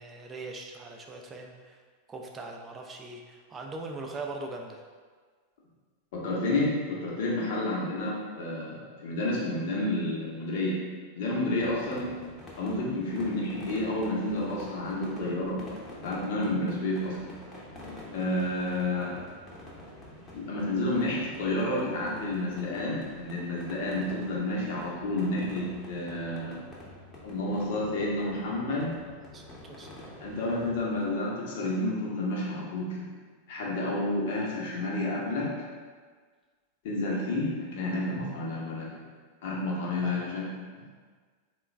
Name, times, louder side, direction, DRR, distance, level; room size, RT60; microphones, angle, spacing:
voice 1, 0.0-1.8 2.1-4.8 29.2-30.1 40.0-40.1, right 2 dB, 20° right, 1 dB, 0.4 m, -41 dB
voice 2, 6.1-10.8 11.1-12.1 12.5-15.6 16.0-17.2 18.1-19.2 20.3-26.6 27.2-28.9 30.2-33.1 33.5-35.5 36.8-39.0 39.4-40.5 40.7-40.8, left 1 dB, 50° left, -4 dB, 0.9 m, -30 dB
sound 1, 11.6-31.1, left 1 dB, 20° left, 0.8 m, -47 dB
3.8 x 2.3 x 3.3 m, 1.5 s
figure-of-eight pair, 90°, 0 cm